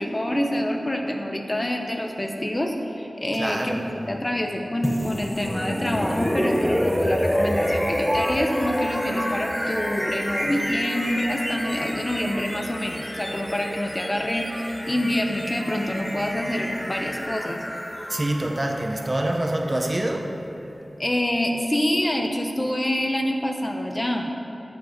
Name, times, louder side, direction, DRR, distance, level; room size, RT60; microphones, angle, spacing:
voice 1, 0.0-17.6 21.0-24.3, left 1 dB, 30° left, 2 dB, 1.1 m, -26 dB
voice 2, 3.3-3.9 18.1-20.3, right 1 dB, 35° right, 3 dB, 1.1 m, -26 dB
sound 1, 4.8-20.7, equal, 10° left, 0.9 m, -28 dB
13.5 x 7.7 x 4.5 m, 2.9 s
wide cardioid pair, 50°, 0 cm